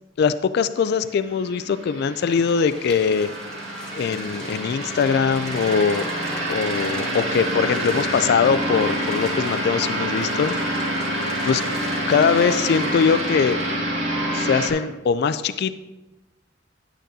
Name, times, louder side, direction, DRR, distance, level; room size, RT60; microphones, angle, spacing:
voice 1, 0.2-3.3 3.9-6.1 6.5-10.5 11.4-11.6 12.0-13.6 14.3-15.7, left 6 dB, 60° left, 13 dB, 0.3 m, -21 dB
sound 1, 1.2-14.7, right 1 dB, 80° right, 1.9 m, -27 dB
sound 2, 2.2-13.8, left 1 dB, 5° left, 1.1 m, -41 dB
10.0 x 9.0 x 2.7 m, 1.1 s
head